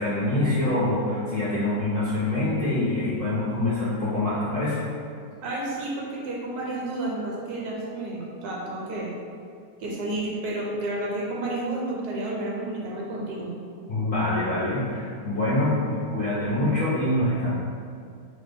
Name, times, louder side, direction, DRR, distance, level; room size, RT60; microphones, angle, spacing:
voice 1, 0.0-4.8 13.9-17.5, left 1 dB, 60° left, -11 dB, 0.6 m, -25 dB
voice 2, 5.4-9.1 9.8-13.5, right 2 dB, 70° right, -3 dB, 1.1 m, -31 dB
3.1 x 2.1 x 3.3 m, 2.3 s
omnidirectional pair, 1.8 m